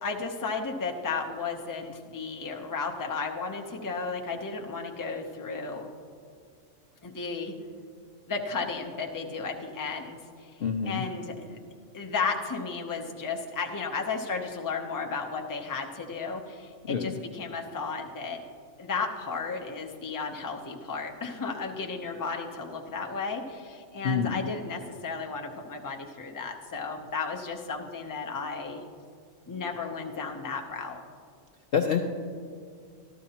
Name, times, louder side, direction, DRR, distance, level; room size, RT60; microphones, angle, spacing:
voice 1, 0.0-5.9 7.0-7.5 8.3-10.5 10.9-11.6 11.9-18.4 18.8-28.8 29.5-31.0, left 4 dB, 20° left, 2 dB, 0.6 m, -34 dB
voice 2, 10.6-11.0 16.9-17.1 24.0-24.4 31.7-32.0, left 6 dB, 60° left, 3 dB, 0.7 m, -26 dB
13.0 x 13.0 x 2.9 m, 2.1 s
omnidirectional pair, 1.3 m